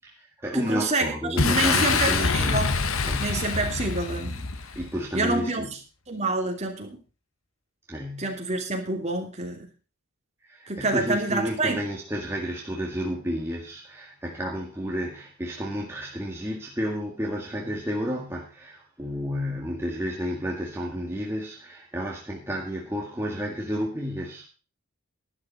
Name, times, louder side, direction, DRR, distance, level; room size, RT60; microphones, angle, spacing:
voice 1, 0.0-2.7 3.0-3.5 4.8-5.7 7.9-8.4 10.4-24.5, equal, 10° right, 1.9 m, -31 dB
voice 2, 0.5-2.7 3.2-4.5 5.1-5.7 6.1-7.0 8.2-9.7 10.7-11.8, right 2 dB, 30° right, 2.9 m, -27 dB
Boom, 1.4-5.0, left 4 dB, 70° left, 1.2 m, -25 dB
12.5 x 12.0 x 4.2 m
head